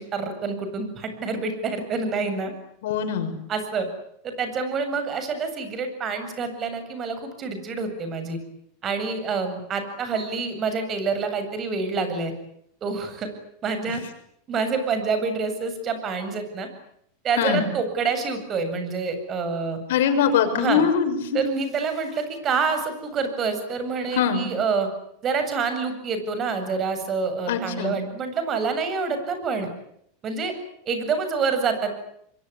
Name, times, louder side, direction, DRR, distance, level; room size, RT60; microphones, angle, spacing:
voice 1, 0.0-2.5 3.5-3.9 4.2-8.4 8.8-12.3 12.8-13.3 13.6-14.0 14.5-16.7 17.2-19.8 20.5-20.8 21.3-24.9 25.2-29.7 30.2-30.5 30.9-31.9, right 5 dB, 30° right, 8 dB, 7.7 m, -27 dB
voice 2, 2.8-3.4 17.4-17.7 19.9-21.4 24.1-24.5 27.5-27.9, left 7 dB, 80° left, 5 dB, 6.6 m, -22 dB
26.0 x 23.0 x 9.9 m, 0.72 s
supercardioid pair, 130°, 0 cm